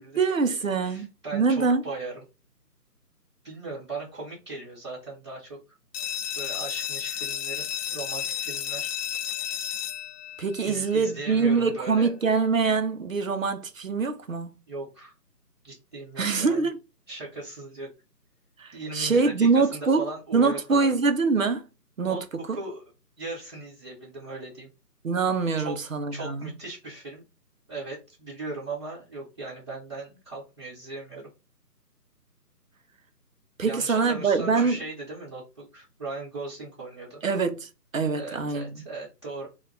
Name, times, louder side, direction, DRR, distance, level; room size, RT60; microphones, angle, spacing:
voice 1, 0.0-1.8 10.4-14.6 16.2-16.8 18.6-20.1 20.3-21.7 22.0-22.5 25.0-26.5 33.6-34.8 37.2-38.8, right 4 dB, 55° right, 0.5 m, -24 dB
voice 2, 0.8-2.2 3.4-5.6 6.3-7.6 7.9-8.9 10.6-12.1 14.7-15.1 15.6-16.7 17.1-17.9 18.7-20.9 22.1-22.8 23.2-24.7 25.6-25.7 26.1-27.2 27.7-31.3 33.6-37.2 38.2-39.5, right 3 dB, 15° right, 1.2 m, -38 dB
sound 1, 5.9-11.4, left 10 dB, 80° left, 0.6 m, -33 dB
4.0 x 2.2 x 2.5 m
hypercardioid pair, 175°, 49 cm